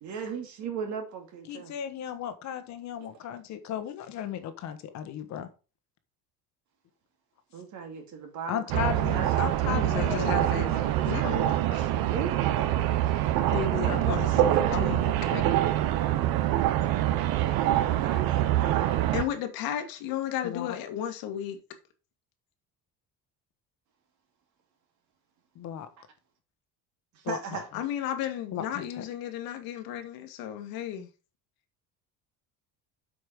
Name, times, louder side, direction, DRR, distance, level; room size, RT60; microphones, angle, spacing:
voice 1, 0.0-1.7 7.5-9.3 10.9-11.4 12.1-13.1 17.8-19.3 27.3-27.7, right 6 dB, 55° right, 2.6 m, -38 dB
voice 2, 1.5-5.5 8.5-10.7 13.8-15.0 15.3-15.5 20.4-20.7 25.5-25.9 27.3-27.6 28.5-29.0, left 9 dB, 55° left, 1.3 m, -35 dB
sound 1, 8.7-19.2, right 13 dB, 80° right, 1.1 m, -25 dB
voice 3, 9.7-11.9 13.5-15.1 19.1-21.6 27.7-31.1, left 10 dB, 90° left, 1.9 m, -34 dB
8.0 x 5.4 x 5.2 m
cardioid pair, 160°, 35 cm